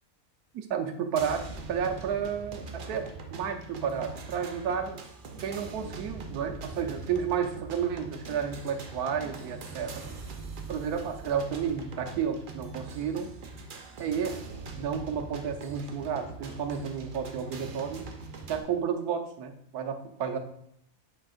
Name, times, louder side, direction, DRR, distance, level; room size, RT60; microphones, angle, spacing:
voice 1, 0.5-5.0 5.4-10.1 10.7-13.3 14.0-14.4 14.7-18.1 18.5-20.4, right 7 dB, 90° right, 5 dB, 1.2 m, -32 dB
sound 1, 1.2-18.6, right 3 dB, 50° right, 0.6 m, -42 dB
7.5 x 5.3 x 2.4 m, 0.70 s
omnidirectional pair, 1.6 m